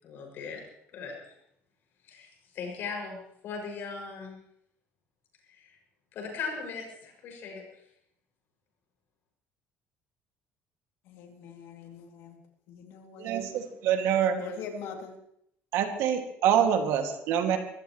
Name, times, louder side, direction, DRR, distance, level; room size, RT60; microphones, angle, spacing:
voice 1, 0.0-0.6 0.9-1.3 2.0-4.4 5.6-5.8 6.1-7.6, left 5 dB, 50° left, 1 dB, 6.4 m, -39 dB
voice 2, 11.1-12.4 12.7-13.4 14.4-15.2, left 5 dB, 75° left, 2 dB, 2.7 m, -42 dB
voice 3, 13.2-14.4 15.7-17.6, right 9 dB, 70° right, 5 dB, 2.2 m, -26 dB
24.0 x 15.0 x 3.2 m, 0.73 s
cardioid pair, 175°, 5 cm